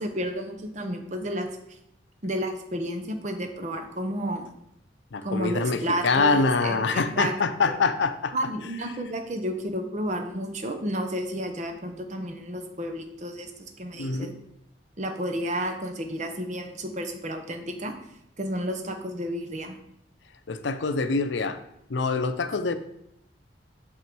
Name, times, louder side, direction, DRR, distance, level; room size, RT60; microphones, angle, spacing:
voice 1, 0.0-1.5 2.2-4.5 5.2-7.3 7.7-7.8 8.3-13.5 13.8-14.3 15.0-17.9 18.4-19.8, equal, 40° right, 5 dB, 0.8 m, -31 dB
voice 2, 5.1-8.3 14.0-14.3 20.5-21.6 21.9-22.7, left 4 dB, 80° left, 10 dB, 0.5 m, -25 dB
6.1 x 3.7 x 6.1 m, 0.79 s
head